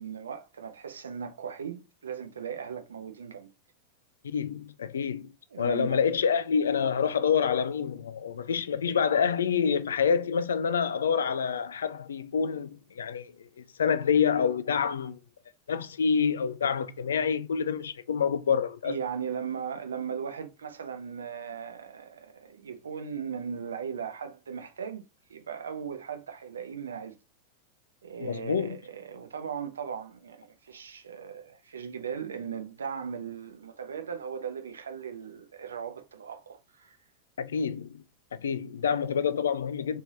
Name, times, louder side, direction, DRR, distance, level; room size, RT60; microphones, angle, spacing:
voice 1, 0.0-3.5 5.5-6.0 18.8-25.0 25.3-27.1 28.0-37.0, right 7 dB, 70° right, 0.6 m, -38 dB
voice 2, 4.3-5.3 5.6-13.3 13.6-15.2 15.7-19.0 28.2-28.8 37.4-38.0 38.3-40.0, left 6 dB, 65° left, 0.3 m, -27 dB
3.5 x 3.2 x 2.7 m
figure-of-eight pair, 90°, 0 cm